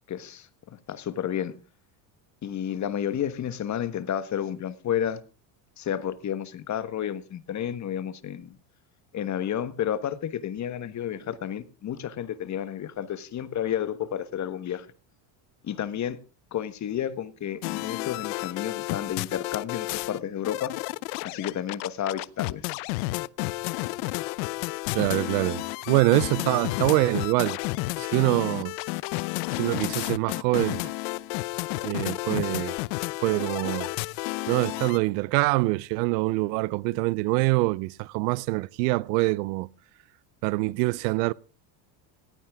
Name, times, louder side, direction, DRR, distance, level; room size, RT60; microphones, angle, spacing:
voice 1, 0.1-1.5 2.4-5.2 5.8-8.5 9.1-14.9 15.6-16.2 16.5-20.7 21.2-22.8, left 10 dB, 35° left, 1.3 m, -31 dB
sound 1, 17.6-20.2 20.4-35.0, left 22 dB, 80° left, 0.7 m, -31 dB
voice 2, 24.9-27.6 28.0-28.7 29.6-30.8 31.8-32.7 33.2-33.9 34.5-39.7 40.4-41.3, right 22 dB, 90° right, 0.7 m, -25 dB
18.5 x 15.0 x 3.5 m
cardioid pair, 125°, 49 cm